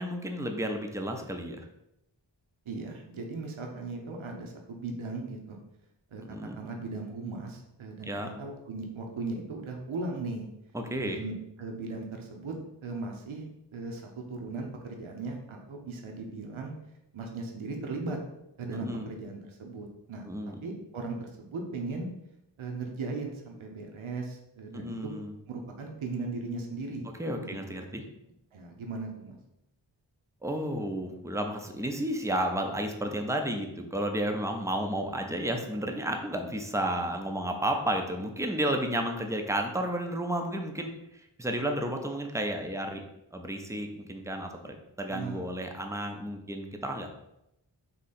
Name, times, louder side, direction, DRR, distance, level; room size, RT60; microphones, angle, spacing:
voice 1, 0.0-1.7 6.3-6.6 8.1-8.3 10.7-11.2 18.7-19.1 20.3-20.5 24.7-25.3 27.2-28.0 30.4-43.0 43.3-47.1, right 1 dB, 5° right, 4 dB, 0.5 m, -32 dB
voice 2, 2.7-5.6 6.1-10.5 11.0-12.5 12.8-16.7 17.1-18.2 18.6-20.3 20.6-22.1 22.6-25.1 25.5-27.1 27.3-27.6 28.5-29.4 45.1-45.5, right 3 dB, 80° right, 2 dB, 0.8 m, -38 dB
3.7 x 2.8 x 4.1 m, 0.85 s
wide cardioid pair, 75°, 48 cm